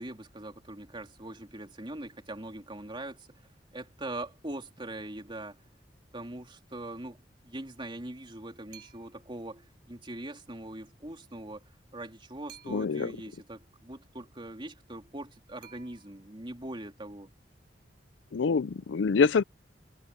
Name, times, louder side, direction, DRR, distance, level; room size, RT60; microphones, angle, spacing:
voice 1, 0.0-3.3 3.7-5.6 6.1-11.6 11.9-17.3, right 1 dB, 30° right, 3.2 m, -42 dB
sound 1, 8.7-9.3 12.5-13.2 15.6-16.4, right 10 dB, 55° right, 7.5 m, -54 dB
voice 2, 12.7-13.1 18.3-19.4, left 5 dB, 90° left, 0.5 m, -25 dB
head